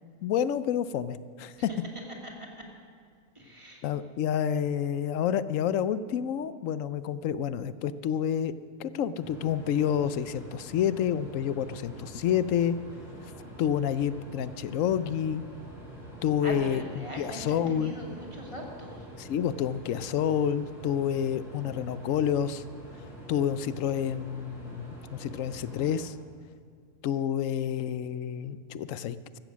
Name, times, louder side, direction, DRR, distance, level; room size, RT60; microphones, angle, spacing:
voice 1, 0.2-1.5 3.8-8.5 8.8-12.8 13.6-15.4 16.2-16.8 17.2-17.9 19.2-22.6 23.3-26.1 27.0-29.4, left 9 dB, 75° left, 15 dB, 1.0 m, -29 dB
voice 2, 2.2-2.6 3.3-3.9 16.4-19.1, equal, 20° right, -1 dB, 2.3 m, -40 dB
sound 1, 9.2-26.0, right 1 dB, ahead, 5.1 m, -46 dB
14.5 x 14.0 x 6.2 m, 2.1 s
omnidirectional pair, 1.4 m